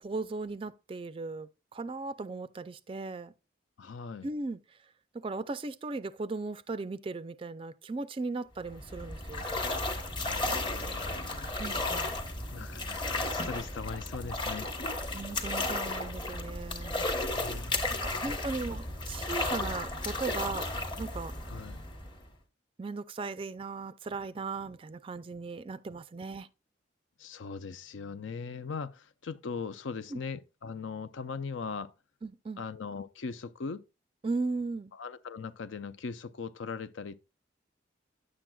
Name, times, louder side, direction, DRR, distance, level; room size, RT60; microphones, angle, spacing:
voice 1, 0.0-3.3 4.2-4.6 5.1-9.5 11.6-12.2 15.1-17.1 18.0-20.7 21.0-21.4 22.8-26.5 30.1-30.2 32.2-32.6 34.2-34.9, right 3 dB, 30° right, 0.3 m, -37 dB
voice 2, 3.8-4.3 10.2-11.8 12.5-14.7 17.3-18.7 21.4-21.8 27.2-31.9 32.6-33.8 34.9-37.2, left 5 dB, 85° left, 0.5 m, -40 dB
sound 1, 8.6-22.3, left 2 dB, 25° left, 0.9 m, -34 dB
9.7 x 7.5 x 2.3 m
head